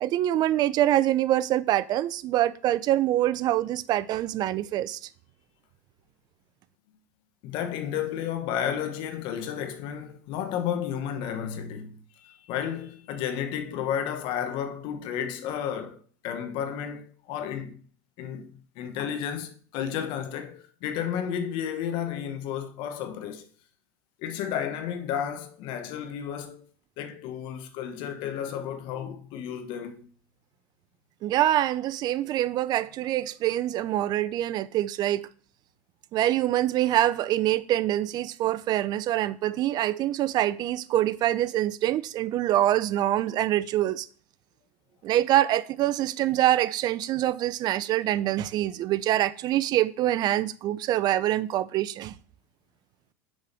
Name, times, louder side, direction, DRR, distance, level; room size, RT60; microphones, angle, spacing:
voice 1, 0.0-5.0 31.2-35.3 36.1-44.1 45.0-52.1, right 13 dB, 45° right, 0.5 m, -25 dB
voice 2, 7.4-17.8 18.2-23.5 24.2-26.6 27.0-30.1, left 9 dB, 55° left, 1.2 m, -32 dB
6.3 x 4.9 x 6.0 m
supercardioid pair, 115°, 10 cm